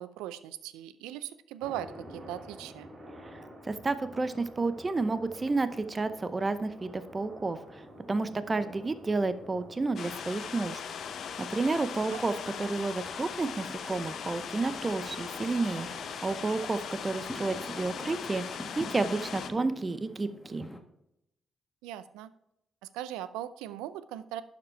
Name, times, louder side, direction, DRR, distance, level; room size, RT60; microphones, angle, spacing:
voice 1, 0.0-2.9 12.0-12.2 21.8-22.3 22.9-24.4, right 12 dB, 85° right, 15 dB, 0.4 m, -39 dB
sound 1, 1.6-19.7, equal, 50° right, 3.3 m, -51 dB
voice 2, 3.3-10.8 11.4-20.7, right 3 dB, 35° right, 12 dB, 0.7 m, -31 dB
Fireworks, 4.5-5.3 5.5-20.8, left 1 dB, 10° left, 1.5 m, -49 dB
sound 2, 10.0-19.5, left 7 dB, 65° left, 0.7 m, -39 dB
11.5 x 5.2 x 4.5 m, 0.81 s
hypercardioid pair, 45°, 0 cm